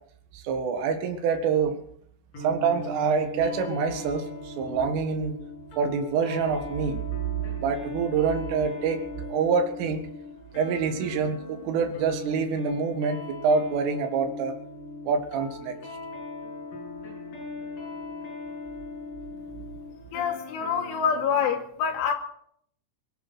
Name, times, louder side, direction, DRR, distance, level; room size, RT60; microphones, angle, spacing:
voice 1, 0.3-1.8 2.4-5.3 5.8-7.0 7.4-10.0 10.5-14.6 15.1-15.7, right 5 dB, 80° right, 4.3 m, -26 dB
sound 1, 2.3-21.5, left 2 dB, 40° left, 9.3 m, -39 dB
voice 2, 20.1-22.1, left 7 dB, 75° left, 4.7 m, -26 dB
23.5 x 9.6 x 6.2 m
omnidirectional pair, 5.6 m